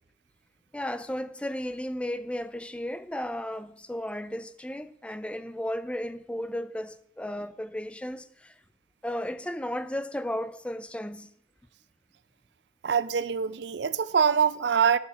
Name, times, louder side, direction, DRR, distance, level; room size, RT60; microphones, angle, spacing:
voice 1, 0.7-8.6 9.0-11.3, left 1 dB, 5° left, 0.3 m, -34 dB
voice 2, 12.8-15.0, right 7 dB, 65° right, 0.5 m, -24 dB
9.6 x 6.7 x 5.6 m
head